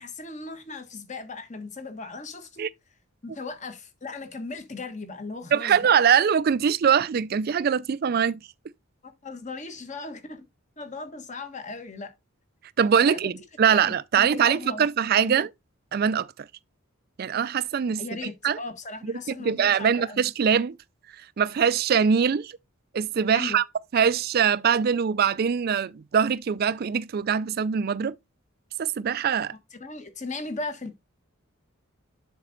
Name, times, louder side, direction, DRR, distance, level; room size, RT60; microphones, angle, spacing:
voice 1, 0.0-2.7 3.2-5.9 9.0-10.4 10.8-12.1 13.0-13.3 13.7-14.8 15.2-15.4 18.0-20.2 23.3-23.6 29.7-30.9, left 3 dB, 35° left, 1.3 m, -37 dB
voice 2, 5.5-8.4 12.8-15.5 15.9-16.3 17.2-18.0 18.4-18.6 19.3-20.8 21.4-22.5 22.9-23.6 23.9-28.2 28.8-29.5, right 7 dB, 45° right, 0.3 m, -22 dB
7.4 x 5.1 x 3.9 m
head